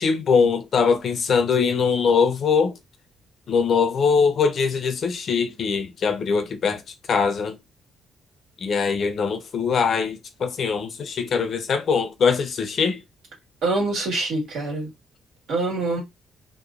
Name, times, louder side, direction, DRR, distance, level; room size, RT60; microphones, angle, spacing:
voice 1, 0.0-2.7 3.5-6.8 7.1-7.6 8.6-13.0, left 5 dB, 55° left, 0.5 m, -22 dB
voice 2, 13.6-14.9 15.5-16.0, right 2 dB, 75° right, 1.6 m, -25 dB
3.0 x 2.1 x 2.4 m
cardioid pair, 90°, 0 cm